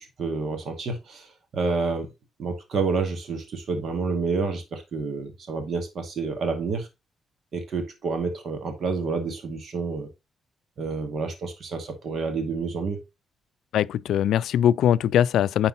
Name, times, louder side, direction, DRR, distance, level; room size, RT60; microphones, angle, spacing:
voice 1, 0.2-1.3 1.5-2.1 2.4-6.9 7.5-10.1 10.8-13.0, right 4 dB, 50° right, 2.3 m, -29 dB
voice 2, 13.7-15.7, left 10 dB, 80° left, 0.3 m, -21 dB
10.0 x 4.3 x 4.1 m
cardioid pair, 140°, 0 cm